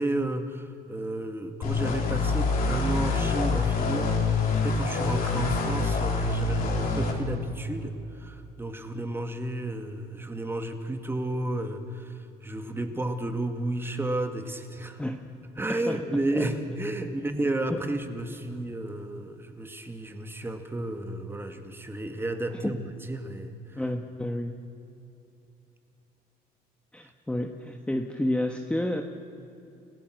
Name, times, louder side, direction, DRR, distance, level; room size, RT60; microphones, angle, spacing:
voice 1, 0.0-15.0 15.6-23.8, right 1 dB, 15° right, 7 dB, 1.9 m, -32 dB
sound 1, 1.6-7.1, left 4 dB, 60° left, 3.8 m, -26 dB
voice 2, 15.7-16.0 16.3-16.5 17.0-17.1 17.7-17.8 22.5-22.8 23.8-24.6 26.9-29.0, left 1 dB, 5° left, 4 dB, 1.2 m, -30 dB
29.0 x 16.5 x 6.4 m, 2.8 s
cardioid pair, 110°, 17 cm